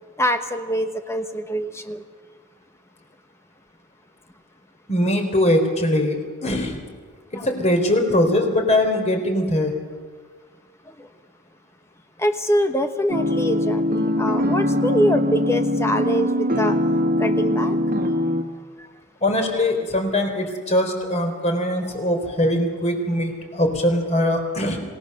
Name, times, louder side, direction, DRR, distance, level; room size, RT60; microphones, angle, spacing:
voice 1, 0.2-2.0 7.3-7.5 11.0-11.1 12.2-16.8 17.2-17.8, equal, 15° left, 7 dB, 1.1 m, -24 dB
voice 2, 4.9-6.2 6.4-6.8 7.4-9.8 19.2-24.8, left 1 dB, 35° left, 4 dB, 3.7 m, -21 dB
sound 1, 13.1-18.4, left 1 dB, 45° right, 1.8 m, -22 dB
27.0 x 18.0 x 6.6 m, 1.5 s
head